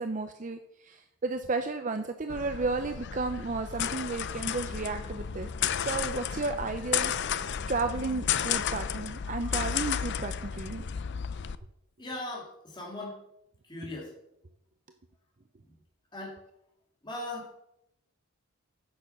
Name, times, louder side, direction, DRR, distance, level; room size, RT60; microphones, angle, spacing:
voice 1, 0.0-7.1 7.4-10.8, right 3 dB, 35° right, 7 dB, 0.6 m, -33 dB
sound 1, 2.3-11.6, left 8 dB, 50° left, 0.5 m, -33 dB
voice 2, 12.0-13.2 13.7-14.1 16.1-16.4 17.0-17.6, left 2 dB, 20° left, -2 dB, 2.3 m, -39 dB
9.9 x 6.8 x 6.9 m, 0.80 s
head